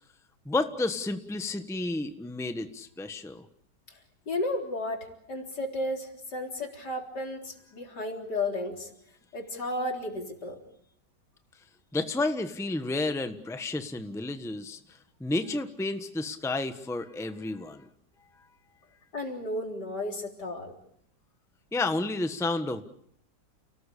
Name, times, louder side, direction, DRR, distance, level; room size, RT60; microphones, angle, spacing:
voice 1, 0.4-3.4 11.9-14.8 15.2-17.8 21.7-22.8, left 2 dB, ahead, 8 dB, 1.2 m, -31 dB
voice 2, 4.3-8.9 9.3-10.6 19.1-20.7, left 1 dB, 75° left, 2 dB, 4.4 m, -33 dB
30.0 x 19.0 x 8.5 m, 0.70 s
omnidirectional pair, 1.8 m